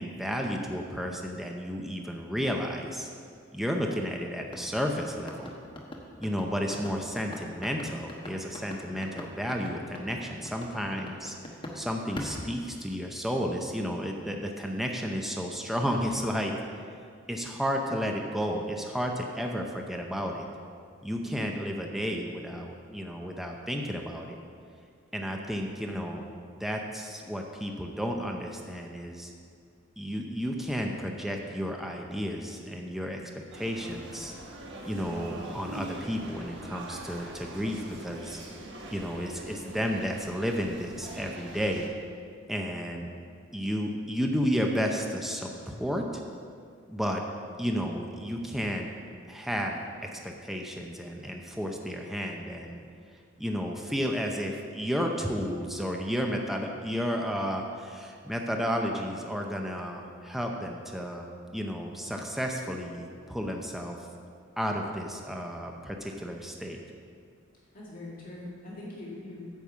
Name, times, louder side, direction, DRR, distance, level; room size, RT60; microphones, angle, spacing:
voice 1, 0.0-3.1 3.5-5.5 6.2-11.4 11.7-16.6 17.3-20.5 21.0-24.4 25.1-26.2 26.6-29.3 30.0-34.3 34.8-38.4 38.9-41.9 42.5-43.1 43.5-46.1 46.9-47.2 47.6-48.9 49.3-52.8 53.4-61.3 61.5-64.0 64.6-66.8, equal, ahead, 1 dB, 0.6 m, -32 dB
sound 1, 4.5-11.8 12.2-13.2, left 1 dB, 25° left, 1.1 m, -41 dB
sound 2, 33.5-41.9, right 1 dB, 60° right, 1.2 m, -43 dB
voice 2, 67.7-69.5, left 2 dB, 45° left, -7 dB, 2.0 m, -42 dB
9.4 x 5.3 x 7.3 m, 2.2 s
head